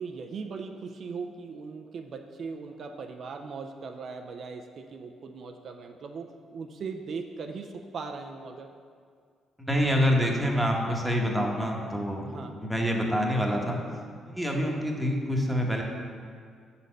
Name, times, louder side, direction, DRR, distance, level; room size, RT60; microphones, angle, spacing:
voice 1, 0.0-8.7 12.3-12.6, right 5 dB, 55° right, 5 dB, 0.4 m, -39 dB
voice 2, 9.6-13.8 14.2-15.8, equal, ahead, -1 dB, 1.1 m, -26 dB
6.8 x 4.1 x 6.4 m, 2.1 s
cardioid pair, 90°, 0 cm